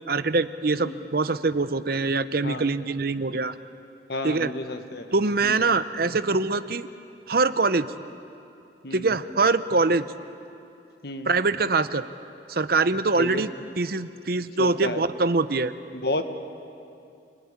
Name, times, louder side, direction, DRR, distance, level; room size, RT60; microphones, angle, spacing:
voice 1, 0.1-3.6 4.2-4.5 5.1-6.9 7.3-7.9 8.9-10.1 11.3-12.0 12.5-13.5 13.8-15.7, right 3 dB, 55° right, 12 dB, 0.8 m, -23 dB
voice 2, 4.1-5.1 5.4-5.7 8.8-9.2 11.0-11.4 13.1-13.5 14.6-15.0 15.9-16.2, left 1 dB, 60° left, 7 dB, 1.6 m, -31 dB
28.5 x 20.5 x 9.7 m, 2.5 s
head